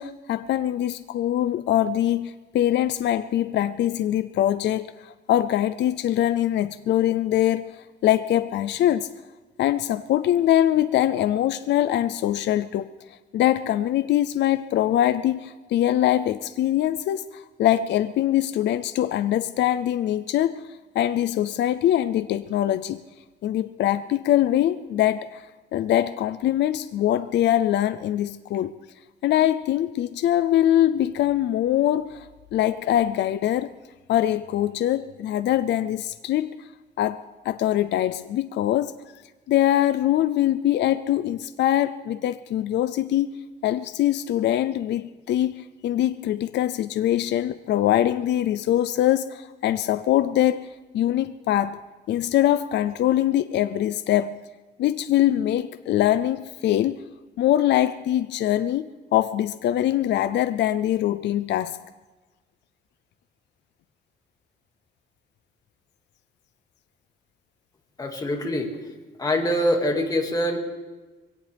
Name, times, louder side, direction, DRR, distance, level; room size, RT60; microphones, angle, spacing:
voice 1, 0.0-9.1 9.6-20.7 20.9-23.0 23.4-25.5 25.7-28.7 29.2-33.7 34.1-36.7 37.0-39.0 39.5-51.8 52.1-54.4 54.8-57.0 57.4-61.8, left 12 dB, 70° left, 0.5 m, -23 dB
voice 2, 68.0-68.7 69.2-70.6, equal, 20° left, 2.1 m, -24 dB
23.0 x 17.0 x 3.4 m
cardioid pair, 145°, 19 cm